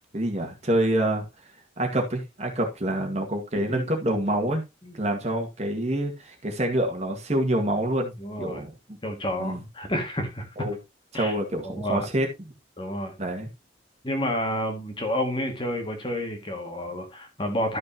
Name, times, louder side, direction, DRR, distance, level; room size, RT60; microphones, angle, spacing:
voice 1, 0.1-1.2 1.8-4.6 4.9-8.1 8.4-8.7 9.4-9.6 10.6-10.8 11.1-12.3 13.2-13.5, right 1 dB, 35° right, 1.9 m, -26 dB
voice 2, 3.5-3.8 4.8-5.0 8.2-8.7 9.0-10.7 11.1-11.4 11.6-12.1 12.8-13.1 14.0-17.8, left 1 dB, 25° left, 2.0 m, -30 dB
13.0 x 6.5 x 2.9 m
head